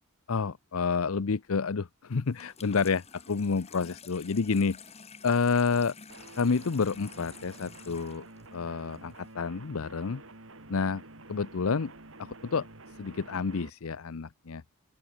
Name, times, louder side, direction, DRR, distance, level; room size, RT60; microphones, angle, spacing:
voice 1, 0.3-4.8 5.2-5.9 6.4-8.2 8.5-10.2 10.7-11.0 11.3-11.9 12.2-12.7 13.0-14.6, left 5 dB, 75° left, 0.6 m, -29 dB
Water tap faucet / Sink (filling or washing), 2.3-9.3, left 6 dB, 30° left, 1.7 m, -51 dB
sound 1, 6.1-13.7, right 2 dB, 65° right, 4.4 m, -49 dB
open air
head